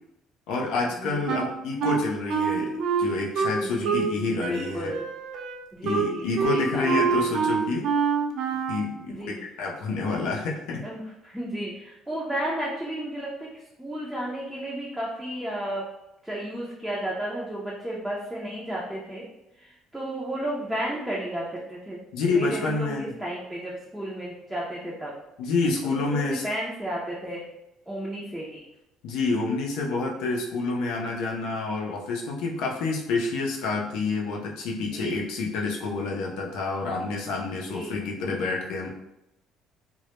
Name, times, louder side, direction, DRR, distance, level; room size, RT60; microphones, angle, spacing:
voice 1, 0.5-4.9 5.8-7.9 8.7-10.8 22.1-23.1 25.4-26.4 29.0-38.9, left 3 dB, 85° left, -1 dB, 0.5 m, -28 dB
Wind instrument woodwind instrument, 1.3-4.1 4.4-8.9, right 6 dB, 65° right, 0.3 m, -26 dB
voice 2, 3.6-5.0 5.7-7.3 9.1-9.4 10.8-15.8 16.2-19.2 19.6-22.0 22.3-25.1 25.9-27.4 27.9-28.6 34.9-35.2 37.7-38.0, right 1 dB, 5° right, -6 dB, 0.5 m, -33 dB
2.2 x 2.0 x 2.9 m, 0.89 s
cardioid pair, 105°, 0 cm